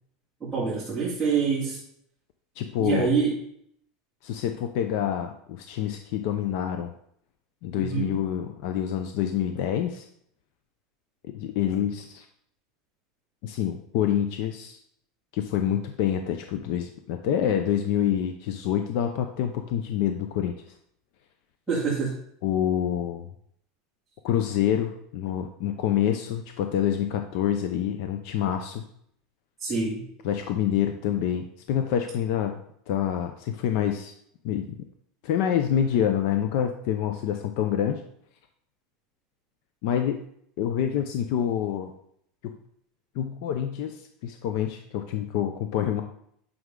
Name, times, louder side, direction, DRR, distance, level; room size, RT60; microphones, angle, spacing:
voice 1, 0.4-1.8 2.8-3.4 7.8-8.2 21.7-22.1 29.6-30.0, right 5 dB, 5° right, -10 dB, 2.5 m, -26 dB
voice 2, 2.6-3.1 4.2-6.9 7.6-10.0 11.3-12.2 13.4-14.8 15.3-20.5 22.4-23.3 24.2-28.8 30.2-32.6 32.9-34.1 34.4-34.8 35.2-38.0 39.8-40.2 40.6-41.9 42.4-42.6 43.1-46.0, left 10 dB, 55° left, 6 dB, 0.7 m, -27 dB
9.5 x 6.2 x 3.8 m, 0.69 s
supercardioid pair, 170°, 0 cm